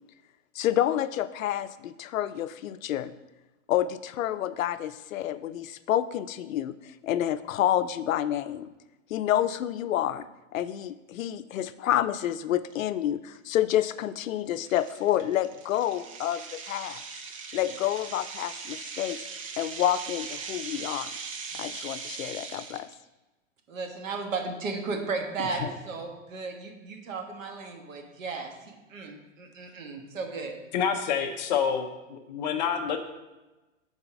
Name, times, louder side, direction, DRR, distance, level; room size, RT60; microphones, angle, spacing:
voice 1, 0.6-3.1 3.7-8.7 9.1-10.3 10.5-17.0 17.5-19.2 19.6-21.1 21.5-22.9, left 12 dB, 85° left, 14 dB, 0.5 m, -28 dB
sound 1, 12.7-12.8 13.3-13.5 14.0-14.1 14.6-22.9, right 5 dB, 25° right, 0.4 m, -40 dB
voice 2, 23.7-30.6, right 4 dB, 75° right, 3 dB, 1.5 m, -35 dB
voice 3, 30.7-33.0, left 7 dB, 35° left, 5 dB, 0.6 m, -28 dB
5.4 x 4.1 x 5.9 m, 1.1 s
hypercardioid pair, 155°, 39 cm